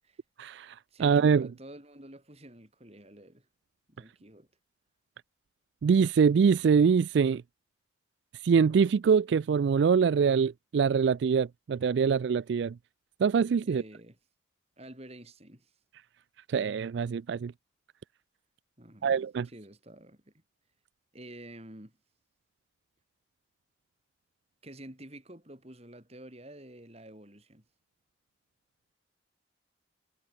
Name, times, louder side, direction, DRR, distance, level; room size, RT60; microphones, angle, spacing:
voice 1, 0.4-1.5 5.8-7.4 8.4-12.8 13.2-13.8 16.5-17.5 19.0-19.5, right 6 dB, 65° right, 0.3 m, -24 dB
voice 2, 0.9-3.5 3.9-4.5 13.6-14.2 14.8-15.7 18.8-19.2 19.4-20.3 21.1-21.9 24.6-27.6, right 1 dB, 35° right, 4.4 m, -49 dB
head